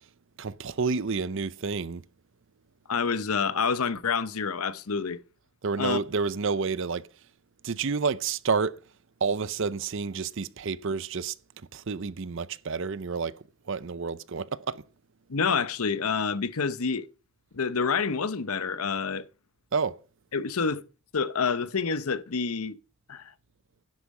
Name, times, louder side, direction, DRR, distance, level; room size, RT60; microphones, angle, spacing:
voice 1, 0.4-2.0 5.6-7.1 7.6-8.8 9.2-11.3 11.7-13.4 13.7-14.8 19.7-20.0, right 5 dB, 60° right, 0.6 m, -29 dB
voice 2, 2.9-5.2 5.8-6.0 15.3-17.1 17.5-19.2 20.3-20.8 21.1-22.8 23.1-23.3, left 5 dB, 80° left, 0.8 m, -28 dB
11.0 x 8.3 x 5.4 m
head